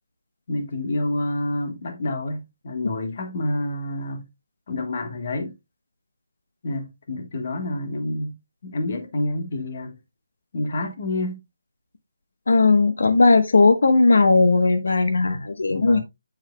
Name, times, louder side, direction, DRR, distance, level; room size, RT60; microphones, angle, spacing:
voice 1, 0.5-4.3 4.7-5.5 6.6-8.3 8.6-10.0 10.5-11.4 15.7-16.0, left 1 dB, 35° left, 1.4 m, -28 dB
voice 2, 12.5-16.0, left 3 dB, 85° left, 1.1 m, -17 dB
7.5 x 7.4 x 2.2 m
hypercardioid pair, 175°, 0 cm